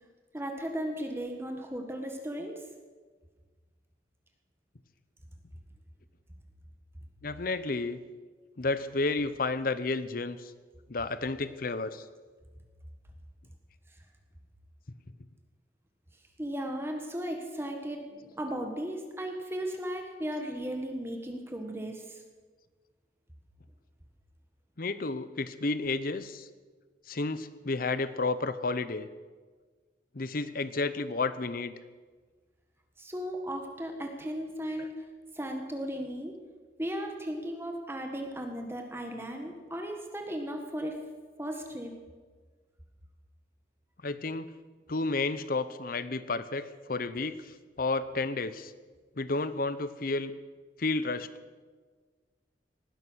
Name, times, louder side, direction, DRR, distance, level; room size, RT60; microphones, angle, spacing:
voice 1, 0.3-2.6 16.4-22.2 33.0-35.1 35.3-36.4 36.8-41.0 41.4-41.9, equal, 15° right, 3 dB, 1.5 m, -36 dB
voice 2, 7.2-8.0 8.6-10.5 10.9-12.0 24.8-26.5 27.1-29.1 30.1-31.7 44.0-44.5 44.9-47.4 47.8-48.7 49.2-50.3 50.8-51.3, left 3 dB, 55° left, 13 dB, 0.8 m, -31 dB
19.0 x 11.0 x 6.3 m, 1.4 s
head